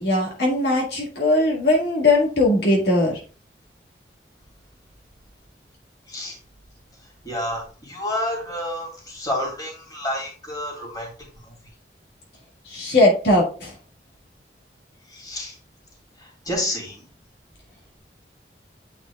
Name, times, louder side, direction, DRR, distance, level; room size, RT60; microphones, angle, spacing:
voice 1, 0.0-3.2 12.7-13.7, left 2 dB, 65° left, -2 dB, 1.8 m, -19 dB
voice 2, 7.2-11.1 15.1-15.5 16.2-17.0, left 1 dB, 20° left, -1 dB, 2.7 m, -29 dB
8.8 x 4.8 x 2.3 m, 0.37 s
head